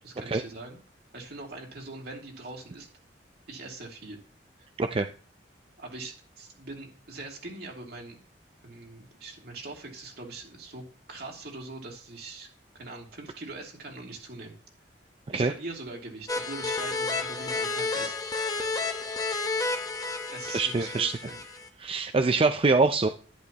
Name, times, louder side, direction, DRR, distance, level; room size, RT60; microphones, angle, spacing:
voice 1, 0.0-0.8 1.1-2.9 3.5-4.2 5.8-8.2 8.6-12.5 12.7-14.5 15.3-18.5 20.3-21.4, right 2 dB, 60° right, 0 dB, 2.8 m, -42 dB
sound 1, 16.3-21.7, left 3 dB, 20° left, 1.0 m, -31 dB
voice 2, 20.5-21.1 21.8-23.1, right 3 dB, 30° right, 8 dB, 0.5 m, -24 dB
11.0 x 10.5 x 3.0 m, 0.40 s
head